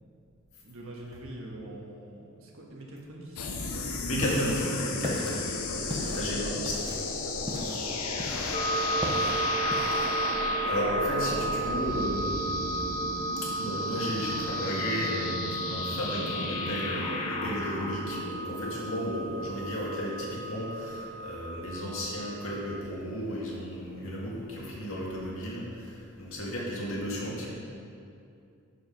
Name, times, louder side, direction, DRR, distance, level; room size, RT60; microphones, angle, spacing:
voice 1, 0.6-4.0 4.8-4.9 5.7-6.8 7.2-9.6, right 1 dB, 65° right, -1 dB, 1.6 m, -45 dB
sound 1, 3.4-20.2, left 3 dB, 80° left, 0.9 m, -34 dB
sound 2, 3.9-10.3, equal, 20° right, 0.8 m, -38 dB
voice 2, 4.0-6.7 10.4-12.8 13.4-27.5, equal, 60° left, -5 dB, 2.2 m, -34 dB
sound 3, 8.5-22.8, right 3 dB, 25° left, 0.3 m, -34 dB
10.5 x 5.3 x 5.3 m, 2.5 s
head